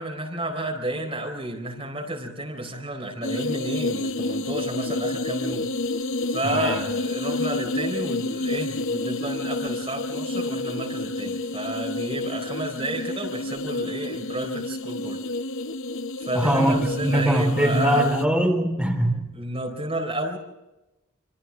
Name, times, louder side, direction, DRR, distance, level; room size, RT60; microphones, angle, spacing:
voice 1, 0.0-5.7 6.3-15.2 16.2-18.1 19.3-20.4, right 1 dB, 25° right, 3 dB, 4.2 m, -31 dB
sound 1, 3.2-18.3, left 2 dB, 65° left, 0.8 m, -29 dB
voice 2, 6.4-6.8 16.3-19.3, right 1 dB, 5° right, 1 dB, 4.0 m, -22 dB
28.0 x 27.5 x 3.6 m, 0.99 s
head